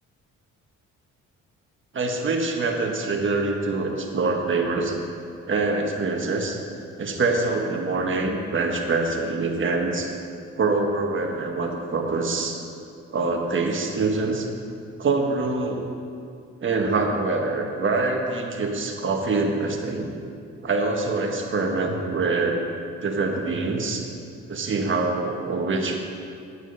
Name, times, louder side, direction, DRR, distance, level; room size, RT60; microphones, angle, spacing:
voice 1, 1.9-5.0 5.5-6.6 7.0-10.1 10.5-12.6 13.1-14.5 15.0-15.9 16.6-20.1 20.6-22.6 23.0-24.0 24.5-26.0, right 3 dB, 40° right, 1 dB, 1.6 m, -25 dB
9.7 x 9.3 x 5.5 m, 2.4 s
cardioid pair, 90°, 30 cm